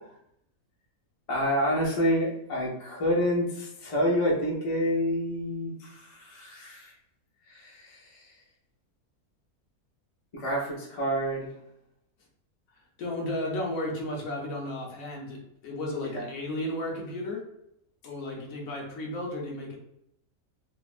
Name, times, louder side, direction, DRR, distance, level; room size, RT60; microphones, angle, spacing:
voice 1, 1.3-6.9 7.5-8.2 10.3-11.5 16.1-16.3, equal, 40° left, -4 dB, 0.4 m, -28 dB
voice 2, 13.0-17.4 18.0-19.8, left 1 dB, 70° left, -1 dB, 1.0 m, -34 dB
3.2 x 2.0 x 2.4 m, 0.78 s
omnidirectional pair, 1.6 m